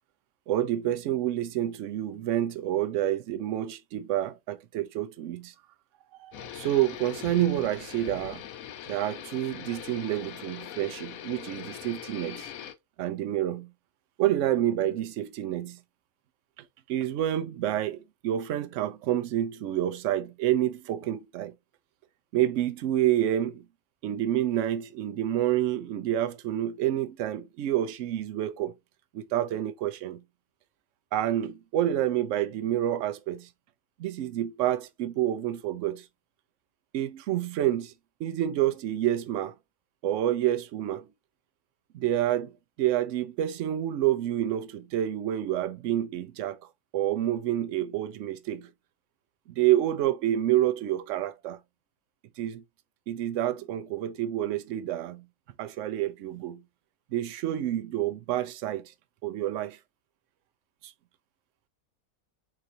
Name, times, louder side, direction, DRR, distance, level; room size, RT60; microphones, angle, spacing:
voice 1, 0.5-5.5 6.2-8.4 8.9-12.5 13.0-13.7 14.2-15.8 16.9-21.5 22.3-23.6 24.0-28.7 29.1-30.2 31.1-33.5 34.0-36.0 36.9-37.9 38.2-39.5 40.0-41.1 41.9-46.6 46.9-48.7 49.6-51.6 52.4-52.6 53.1-55.2 55.6-56.6 57.1-58.9 59.2-59.8 60.8-60.9, right 12 dB, 65° right, 0.8 m, -28 dB
sound 1, 6.3-12.7, left 10 dB, 75° left, 1.0 m, -41 dB
3.9 x 3.2 x 2.7 m
omnidirectional pair, 1.6 m